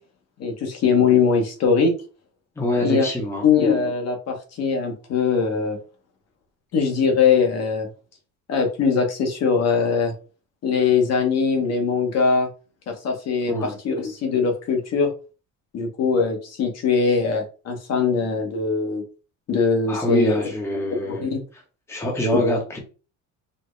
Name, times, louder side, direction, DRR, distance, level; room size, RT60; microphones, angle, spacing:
voice 1, 0.4-1.9 2.8-3.0 3.4-5.8 6.7-7.9 8.5-10.1 10.6-12.5 12.9-15.1 15.7-19.0 19.5-20.4 20.9-21.4, left 5 dB, 50° left, 3 dB, 0.9 m, -21 dB
voice 2, 2.6-3.4 13.5-13.8 19.9-21.3 21.9-22.8, equal, 10° left, 0 dB, 0.7 m, -24 dB
4.2 x 2.0 x 3.1 m, 0.35 s
cardioid pair, 155°, 33 cm